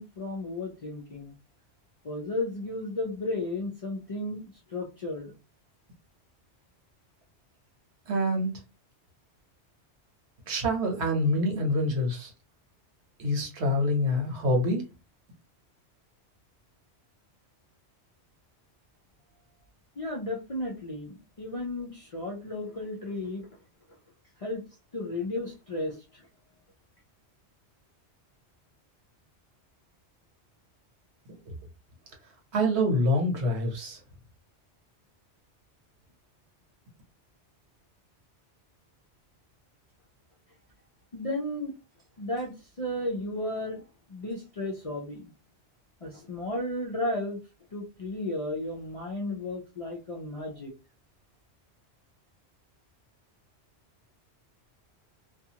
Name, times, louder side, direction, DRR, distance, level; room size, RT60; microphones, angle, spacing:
voice 1, 0.0-1.3 2.0-5.3 20.0-23.5 24.4-24.6 24.9-26.2 41.1-41.7 42.2-43.8 44.1-45.3 46.0-47.4 47.7-50.7, left 1 dB, 45° left, 0.4 m, -34 dB
voice 2, 8.1-8.5 10.5-12.3 13.2-14.9 32.5-34.0, left 1 dB, 75° right, 1.1 m, -26 dB
2.4 x 2.4 x 2.8 m
omnidirectional pair, 1.2 m